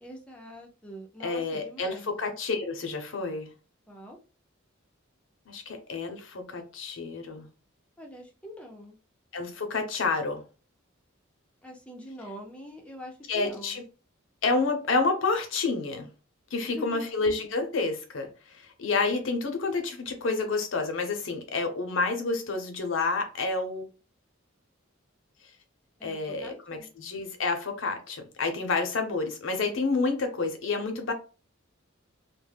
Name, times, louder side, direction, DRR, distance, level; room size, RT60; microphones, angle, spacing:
voice 1, 0.0-2.1 3.9-4.2 8.0-9.0 11.6-13.8 16.6-17.0 26.0-26.9, equal, 5° left, 0.6 m, -44 dB
voice 2, 1.2-3.5 5.5-7.5 9.3-10.4 13.3-13.8 14.4-16.1 16.5-23.8 26.0-31.1, left 3 dB, 70° left, 0.7 m, -29 dB
2.2 x 2.1 x 3.3 m
head